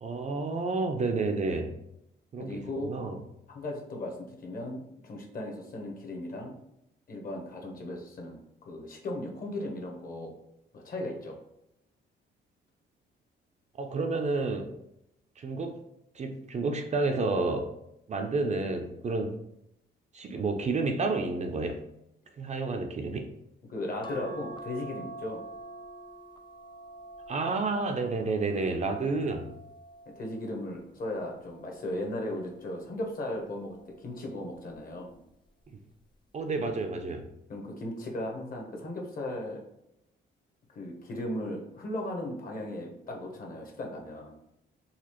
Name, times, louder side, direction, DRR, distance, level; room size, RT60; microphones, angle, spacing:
voice 1, 0.0-1.7 2.3-3.2 13.8-14.7 15.4-15.8 16.1-17.7 18.1-19.4 20.1-21.8 22.4-23.3 27.3-29.5 36.3-37.2, right 3 dB, 35° right, 5 dB, 0.4 m, -30 dB
voice 2, 2.4-2.9 3.5-6.5 7.1-10.3 10.7-11.4 23.7-25.4 30.2-35.2 37.5-39.6 40.7-44.3, left 1 dB, 45° left, 1 dB, 1.0 m, -37 dB
sound 1, 24.0-30.6 31.3-32.7 33.9-34.4 34.7-34.8, right 2 dB, 25° left, 0.4 m, -47 dB
4.0 x 2.4 x 3.0 m, 0.81 s
cardioid pair, 90°, 20 cm